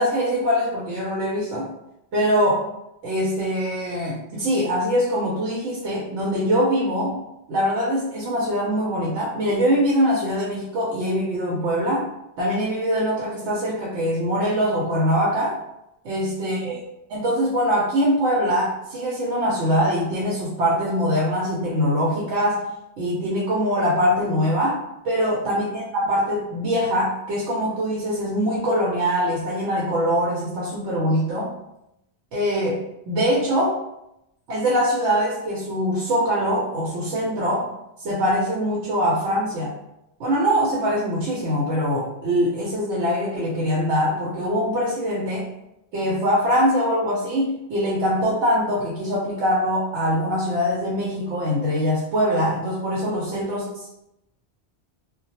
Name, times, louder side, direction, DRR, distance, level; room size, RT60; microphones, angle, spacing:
voice 1, 0.0-1.7 2.1-2.6 3.0-7.2 7.5-12.1 12.4-15.6 16.0-16.8 17.1-22.6 23.0-24.8 25.0-31.5 32.3-33.8 34.5-37.7 38.0-39.7 40.2-45.5 45.9-53.9, equal, 90° right, -5 dB, 0.9 m, -23 dB
2.2 x 2.1 x 2.8 m, 0.85 s
omnidirectional pair, 1.2 m